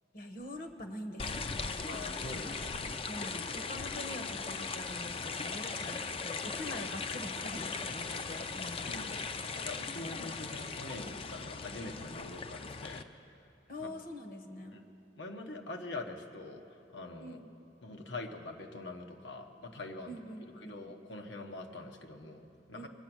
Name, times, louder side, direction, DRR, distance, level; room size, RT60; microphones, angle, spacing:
voice 1, 0.1-2.0 2.3-2.6 3.1-9.0 13.7-14.7 17.2-17.5 20.1-20.7 22.7-22.9, left 1 dB, 55° left, 6 dB, 1.0 m, -44 dB
sound 1, 1.2-13.0, left 4 dB, 30° left, 0.4 m, -39 dB
voice 2, 1.9-3.0 3.3-3.8 8.8-9.3 9.6-13.4 13.8-13.9 14.7-14.8 15.2-17.4 17.8-20.1 20.5-22.9, left 2 dB, 85° left, 3 dB, 1.0 m, -44 dB
22.0 x 7.9 x 6.1 m, 2.6 s
head